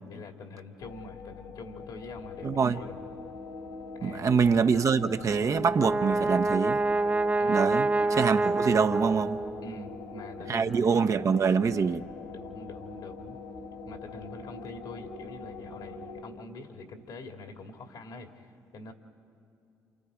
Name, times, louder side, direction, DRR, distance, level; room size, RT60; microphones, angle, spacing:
voice 1, 0.0-3.0 4.0-4.3 7.4-7.8 9.6-10.8 12.3-13.4 13.9-18.9, left 2 dB, 65° left, 2.3 m, -45 dB
sound 1, 0.8-16.2, left 4 dB, 85° left, 3.2 m, -43 dB
voice 2, 2.4-2.8 4.0-6.8 7.5-7.9 8.2-9.4 10.5-12.0, right 6 dB, 45° right, 0.8 m, -25 dB
Brass instrument, 5.4-9.8, right 2 dB, 20° right, 0.6 m, -27 dB
29.5 x 28.0 x 4.9 m
hypercardioid pair, 60°, 8 cm